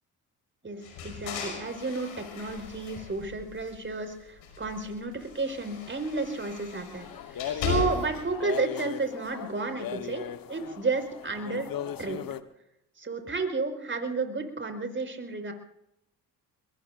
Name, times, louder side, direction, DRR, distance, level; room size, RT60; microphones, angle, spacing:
voice 1, 0.6-11.7 12.0-12.3 13.0-15.5, right 3 dB, 30° right, 6 dB, 5.0 m, -32 dB
sound 1, 0.8-4.0 4.4-8.3, left 4 dB, 90° left, 5.7 m, -38 dB
sound 2, 6.9-12.4, left 9 dB, 55° left, 1.3 m, -37 dB
25.0 x 22.5 x 2.6 m, 0.81 s
supercardioid pair, 65°, 40 cm